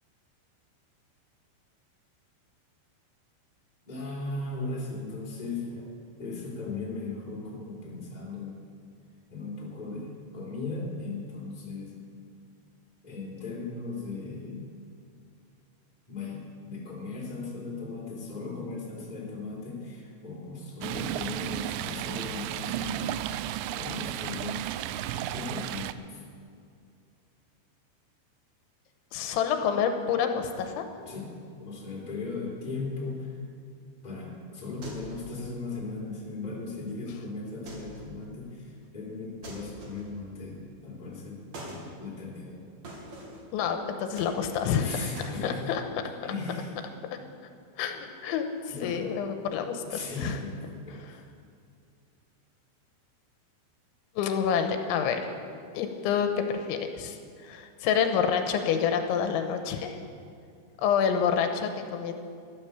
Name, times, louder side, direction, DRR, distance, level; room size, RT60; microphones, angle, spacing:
voice 1, 3.8-5.9 6.2-8.6 9.3-11.9 13.0-14.6 16.1-23.2 23.7-24.7 25.3-26.2 31.0-33.4 34.0-42.7 44.8-45.7 46.2-46.7 48.7-49.0 49.8-51.3, left 3 dB, 10° left, -4 dB, 2.5 m, -37 dB
Stream, 20.8-25.9, right 12 dB, 85° right, 2.6 m, -33 dB
voice 2, 29.1-30.8 43.5-45.1 45.4-45.8 47.8-48.5 48.8-50.4 54.2-55.3 55.7-57.2 57.4-60.0 60.8-62.1, left 7 dB, 85° left, 6 dB, 3.2 m, -28 dB
sound 1, 34.8-35.3 37.7-38.1 39.4-40.2 41.5-41.9 42.8-43.5 44.2-44.8 45.2-45.4, right 1 dB, 45° right, 2.9 m, -43 dB
13.5 x 12.5 x 7.0 m, 2.4 s
omnidirectional pair, 5.4 m